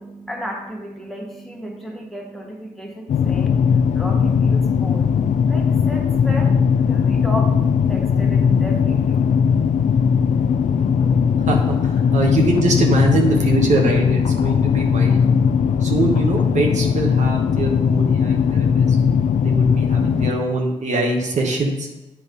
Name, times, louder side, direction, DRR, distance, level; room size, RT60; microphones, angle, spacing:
voice 1, 0.0-5.0 5.5-6.5 6.9-7.5 7.9-9.2, equal, ahead, -1 dB, 1.5 m, -33 dB
sound 1, 3.1-20.3, left 6 dB, 70° left, 0.4 m, -18 dB
voice 2, 11.4-15.2 15.8-19.0 19.4-21.9, right 2 dB, 65° right, 0 dB, 1.1 m, -23 dB
8.2 x 3.0 x 5.2 m, 0.98 s
cardioid pair, 55°, 13 cm